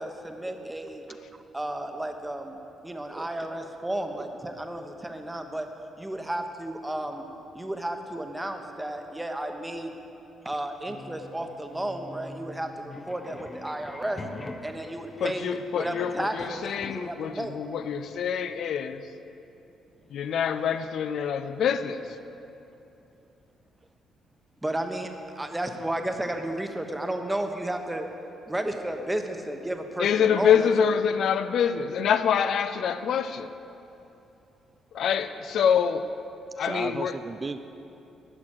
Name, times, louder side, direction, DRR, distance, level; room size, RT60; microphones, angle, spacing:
voice 1, 0.0-1.0 1.5-2.6 2.8-5.7 6.0-7.2 7.5-9.9 10.4-14.2 14.6-17.6 24.6-28.1 28.4-30.7, right 1 dB, 10° right, 5 dB, 1.0 m, -33 dB
voice 2, 1.1-1.4 3.1-3.3 36.5-37.6, right 3 dB, 30° right, 10 dB, 0.3 m, -36 dB
sound 1, 10.9-17.2, left 2 dB, 25° left, 0.6 m, -44 dB
voice 3, 15.2-19.0 20.1-22.0 30.0-33.5 34.9-36.1 36.6-37.1, left 7 dB, 70° left, 11 dB, 0.4 m, -25 dB
11.0 x 5.9 x 7.8 m, 2.8 s
cardioid pair, 90°, 0 cm